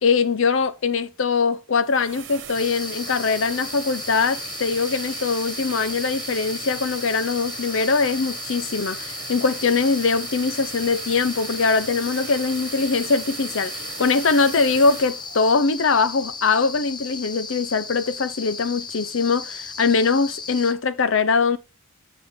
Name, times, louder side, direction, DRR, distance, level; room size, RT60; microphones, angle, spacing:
voice 1, 0.0-21.6, left 4 dB, 65° left, 0.6 m, -22 dB
sound 1, 1.7-16.6, right 8 dB, 60° right, 1.3 m, -38 dB
sound 2, 2.5-20.7, left 4 dB, 20° left, 0.6 m, -35 dB
8.0 x 6.7 x 3.6 m
head